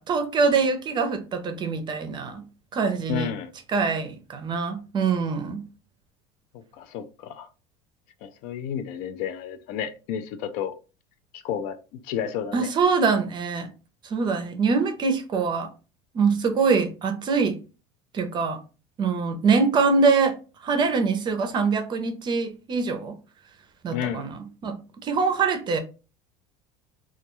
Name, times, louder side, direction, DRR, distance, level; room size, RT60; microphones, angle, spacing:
voice 1, 0.0-2.4 2.7-3.3 3.7-5.7 12.5-13.7 14.0-15.7 16.1-17.6 18.1-18.6 19.0-20.3 20.6-23.2 23.8-24.3 24.6-25.8, right 4 dB, 30° right, 0.5 m, -24 dB
voice 2, 3.1-3.5 6.5-7.5 8.2-10.8 11.3-12.7 23.9-24.3, left 9 dB, 65° left, 0.4 m, -31 dB
2.3 x 2.2 x 2.9 m
supercardioid pair, 130°, 15 cm